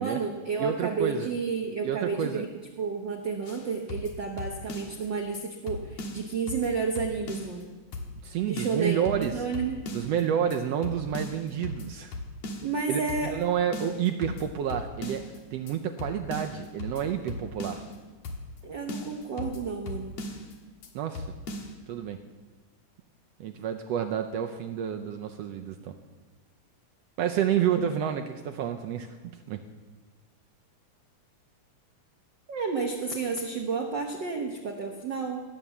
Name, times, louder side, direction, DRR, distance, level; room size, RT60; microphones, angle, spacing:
voice 1, 0.0-2.5 2.8-7.7 8.5-9.8 12.6-13.4 18.6-20.1 32.5-35.4, right 5 dB, 55° right, 1 dB, 1.3 m, -31 dB
voice 2, 0.6-1.3 1.8-2.5 8.2-9.4 9.9-12.2 12.9-17.8 20.9-21.3 21.9-22.2 23.4-25.9 27.2-29.6, right 9 dB, 75° right, 5 dB, 1.6 m, -29 dB
sound 1, 3.5-5.1 5.3-5.4 5.7-7.6 7.9-8.3 8.6-10.2 10.5-10.6 10.8-12.8 13.1-13.4 13.7-15.4 15.7-15.8 16.0-18.0 18.2-18.6 18.9-20.5 20.8-20.9 21.1-21.7, left 2 dB, 60° left, 2.6 m, -38 dB
18.0 x 8.6 x 7.1 m, 1.3 s
omnidirectional pair, 3.3 m